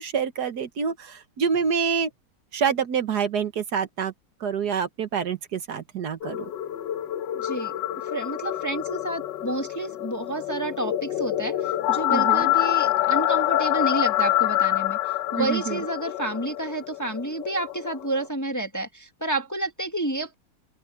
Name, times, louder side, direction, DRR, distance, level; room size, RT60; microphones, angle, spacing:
voice 1, 0.0-2.1 2.5-4.1 4.4-6.5 12.1-12.5 15.4-15.8, right 7 dB, 65° right, 1.7 m, -27 dB
sound 1, 6.2-18.3, left 14 dB, 80° left, 1.5 m, -26 dB
voice 2, 7.3-7.7 8.1-20.3, right 2 dB, 10° left, 1.4 m, -30 dB
open air
omnidirectional pair, 1.9 m